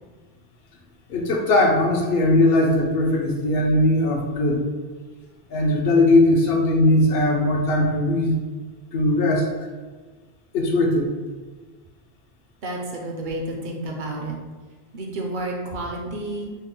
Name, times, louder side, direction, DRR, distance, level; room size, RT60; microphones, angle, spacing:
voice 1, 1.1-4.6 5.5-8.4 8.9-9.5 10.5-11.1, left 1 dB, 65° left, 0 dB, 0.8 m, -19 dB
voice 2, 12.6-14.4 14.9-16.5, right 2 dB, 55° right, 0 dB, 0.7 m, -30 dB
3.7 x 2.0 x 3.7 m, 1.4 s
omnidirectional pair, 1.1 m